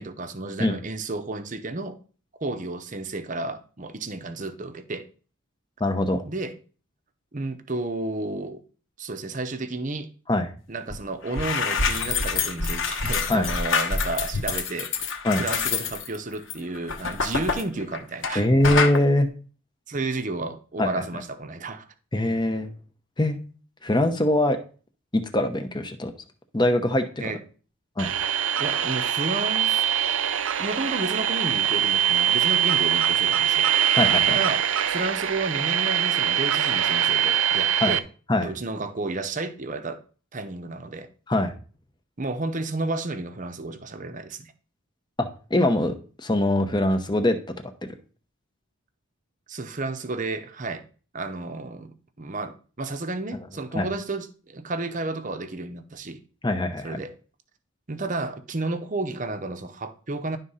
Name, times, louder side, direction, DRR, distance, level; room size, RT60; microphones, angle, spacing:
voice 1, 0.0-2.0 2.4-5.1 6.2-6.6 7.3-8.6 9.0-10.1 10.7-14.9 15.3-18.5 19.9-21.9 27.2-27.4 28.6-29.8 30.6-33.7 34.3-38.0 38.4-40.0 40.3-41.1 42.2-44.5 49.5-50.8 51.1-56.2 56.8-57.1 57.9-60.4, right 2 dB, 35° right, 0.7 m, -32 dB
voice 2, 5.8-6.2 10.3-10.5 13.3-13.5 15.2-15.4 18.3-19.3 20.8-21.0 22.1-22.7 23.2-23.4 23.8-24.6 25.1-26.1 26.5-27.0 28.0-28.1 33.9-34.4 37.8-37.9 38.3-38.5 41.3-41.5 45.2-47.4 53.7-53.9 56.4-57.0, left 1 dB, 20° left, 0.8 m, -22 dB
sound 1, 10.9-11.0 11.2-18.4 18.6-19.0, left 5 dB, 60° left, 1.2 m, -26 dB
sound 2, 28.0-38.0, right 9 dB, 70° right, 0.5 m, -23 dB
11.0 x 3.8 x 5.6 m
head